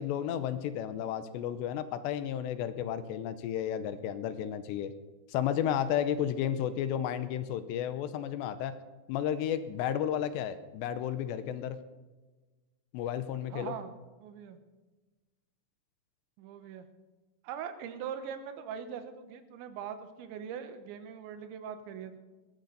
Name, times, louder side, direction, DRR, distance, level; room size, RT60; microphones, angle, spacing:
voice 1, 0.0-4.9 5.3-8.8 9.1-11.8 12.9-13.7, left 10 dB, 80° left, 11 dB, 2.8 m, -32 dB
voice 2, 13.5-14.6 16.4-16.9 17.4-22.2, right 8 dB, 80° right, 8 dB, 3.4 m, -41 dB
18.5 x 13.5 x 4.0 m, 1.2 s
omnidirectional pair, 5.2 m